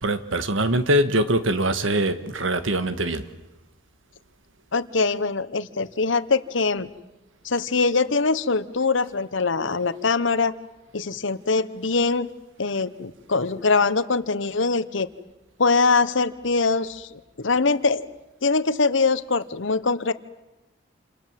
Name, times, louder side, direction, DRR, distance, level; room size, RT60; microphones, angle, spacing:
voice 1, 0.0-3.3, right 1 dB, 80° right, 1.6 m, -23 dB
voice 2, 4.7-6.9 7.4-10.5 10.9-12.3 12.6-15.1 15.6-18.1 18.4-20.1, left 4 dB, 75° left, 1.1 m, -23 dB
28.0 x 27.0 x 7.5 m
head